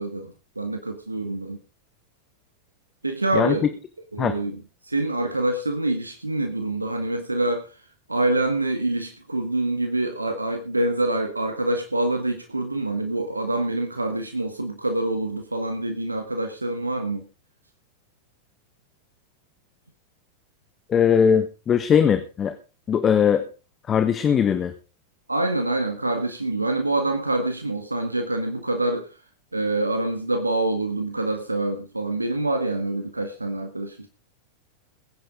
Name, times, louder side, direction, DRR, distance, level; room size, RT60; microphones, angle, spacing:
voice 1, 0.0-1.6 3.0-3.7 4.1-4.6 4.8-7.8 8.1-17.3 25.3-29.1 29.5-34.1, right 2 dB, 80° right, 6 dB, 1.8 m, -26 dB
voice 2, 20.9-22.5 22.9-23.5 23.9-24.7, left 7 dB, 25° left, 10 dB, 1.3 m, -20 dB
21.0 x 10.0 x 3.8 m, 0.33 s
figure-of-eight pair, 90°, 0 cm